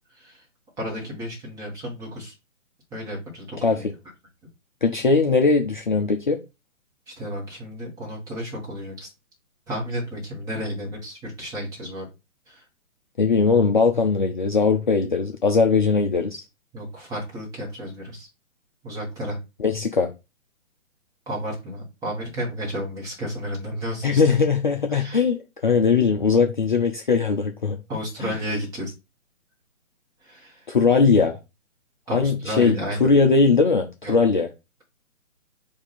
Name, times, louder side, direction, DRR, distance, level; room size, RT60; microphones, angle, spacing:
voice 1, 0.1-0.4 0.8-2.3 2.9-3.9 7.1-9.1 9.7-12.1 12.5-12.6 16.7-18.3 18.8-19.4 21.3-24.4 24.9-25.2 27.9-28.9 30.2-30.7 32.1-33.0 34.0-34.2, equal, 10° right, 1.2 m, -32 dB
voice 2, 4.8-6.4 13.2-16.4 19.6-20.1 24.0-27.8 28.2-28.3 30.7-31.4 32.1-32.7 33.0-34.5, left 4 dB, 35° left, 0.5 m, -20 dB
4.8 x 2.6 x 4.1 m
figure-of-eight pair, 135°, 42 cm